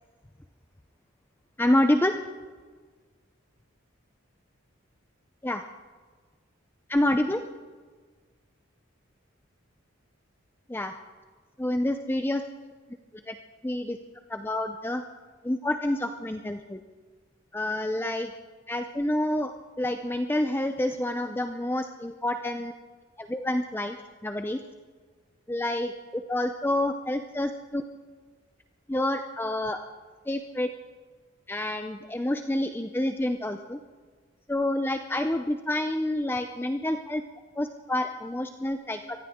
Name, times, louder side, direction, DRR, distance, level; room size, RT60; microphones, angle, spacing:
voice 1, 1.6-2.1 5.4-5.6 6.9-7.4 10.7-10.9 11.6-12.4 13.3-13.4 13.6-14.0 14.3-15.0 15.4-16.8 17.5-18.3 18.7-19.5 19.8-22.7 23.2-24.0 24.2-24.6 25.5-27.8 28.9-29.8 30.3-30.7 31.5-33.8 34.5-37.2 37.6-39.2, left 1 dB, 10° left, 7 dB, 0.5 m, -28 dB
23.5 x 16.0 x 3.7 m, 1.5 s
head